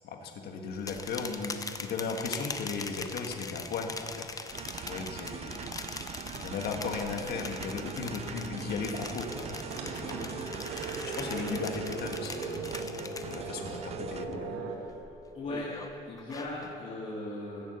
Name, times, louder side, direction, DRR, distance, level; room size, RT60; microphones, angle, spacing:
voice 1, 0.0-4.3 4.8-6.0 6.3-9.5 9.9-10.2 11.0-14.5, left 4 dB, 70° left, 3 dB, 1.6 m, -36 dB
sound 1, 0.7-13.7 14.0-14.5 14.9-16.8, left 4 dB, 20° left, 0.8 m, -42 dB
sound 2, 4.5-14.4, right 7 dB, 40° right, 0.6 m, -42 dB
sound 3, 9.2-14.8, right 4 dB, 80° right, 2.0 m, -38 dB
voice 2, 15.3-15.7 16.1-17.6, left 2 dB, 40° left, -7 dB, 2.5 m, -39 dB
16.0 x 7.3 x 7.0 m, 2.9 s
cardioid pair, 110°, 17 cm